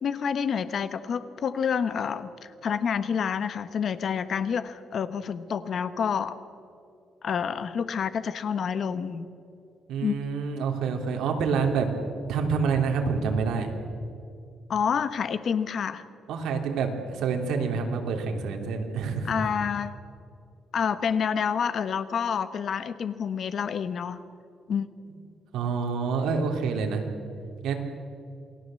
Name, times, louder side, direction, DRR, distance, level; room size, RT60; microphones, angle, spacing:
voice 1, 0.0-6.4 7.2-9.3 10.0-10.2 14.7-16.0 19.2-20.0 20.7-24.2 24.7-24.9, left 7 dB, 50° left, 12 dB, 1.3 m, -28 dB
voice 2, 9.9-11.9 12.3-13.7 16.3-19.3 25.5-27.0 27.6-27.8, right 5 dB, 90° right, 2 dB, 3.2 m, -27 dB
28.5 x 19.5 x 7.7 m, 2.6 s
cardioid pair, 145°, 0 cm